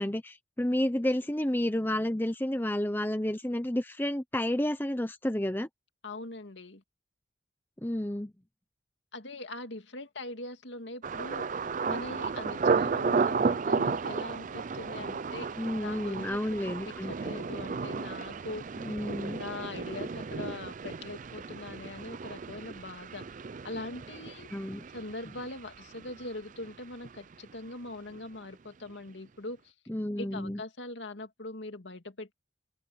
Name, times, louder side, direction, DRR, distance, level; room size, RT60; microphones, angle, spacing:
voice 1, 0.0-5.7 7.8-8.3 15.6-17.4 18.8-19.4 24.5-24.8 29.9-30.6, left 1 dB, 10° left, 1.0 m, -31 dB
voice 2, 6.0-6.8 9.1-15.5 15.8-18.8 19.2-23.3 23.6-24.5 24.9-29.7 30.2-32.3, left 2 dB, 85° left, 2.2 m, -42 dB
Thunder, 11.0-26.8 27.0-27.7 28.1-28.4, right 4 dB, 45° right, 0.5 m, -33 dB
head